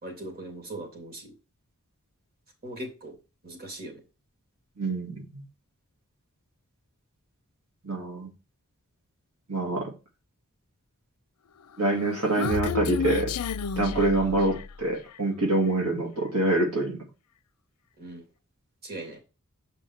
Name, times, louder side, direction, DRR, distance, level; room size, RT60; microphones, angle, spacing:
voice 1, 0.0-1.3 2.6-3.1 3.4-4.0 18.0-18.2 18.8-19.2, right 1 dB, 45° right, 2 dB, 3.1 m, -39 dB
voice 2, 4.8-5.4 7.8-8.3 9.5-9.9 11.8-13.3 13.8-17.0, right 2 dB, 90° right, 1 dB, 2.5 m, -26 dB
Human voice, 11.8-14.8, left 5 dB, 85° left, 0.5 m, -31 dB
7.7 x 5.3 x 4.5 m, 0.30 s
head